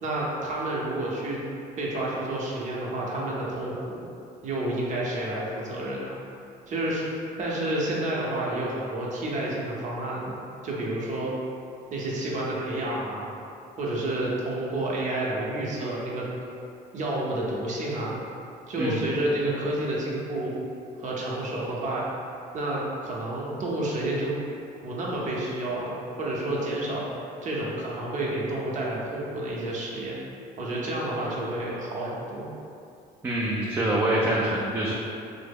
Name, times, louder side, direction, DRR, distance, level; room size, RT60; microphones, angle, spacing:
voice 1, 0.0-1.4 1.8-4.0 4.4-6.2 6.7-7.1 7.4-11.3 11.9-13.3 13.8-16.3 16.9-18.2 18.7-20.6 21.0-22.1 22.5-24.3 24.8-27.1 27.4-30.2 30.6-32.5, right 1 dB, 50° right, -4 dB, 0.7 m, -30 dB
voice 2, 33.2-34.9, right 1 dB, 15° right, -5 dB, 0.3 m, -25 dB
3.2 x 2.0 x 3.5 m, 2.5 s
cardioid pair, 110°, 16 cm